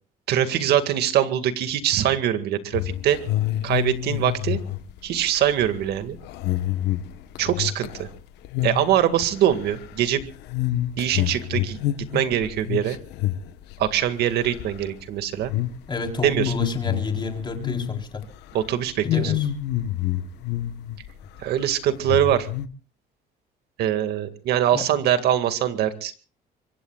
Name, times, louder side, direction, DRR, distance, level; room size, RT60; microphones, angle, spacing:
voice 1, 0.3-3.2 3.6-4.6 5.0-6.2 7.4-8.1 8.6-10.3 11.0-11.8 12.1-13.0 13.8-15.5 16.2-16.5 18.5-19.3 21.4-22.5 23.8-26.1, right 11 dB, 75° right, 9 dB, 2.1 m, -23 dB
sound 1, 2.7-8.2 8.4-8.9 9.2-14.1 14.4-14.9 15.4-15.8 16.2-18.2 18.5-18.7 19.0-21.1 21.4-21.5 22.0-22.7, left 13 dB, 85° left, 1.2 m, -27 dB
voice 2, 15.9-18.2 19.0-19.5 24.7-24.8, left 3 dB, 25° left, 3 dB, 4.0 m, -30 dB
25.0 x 24.0 x 2.4 m, 0.39 s
cardioid pair, 110°, 17 cm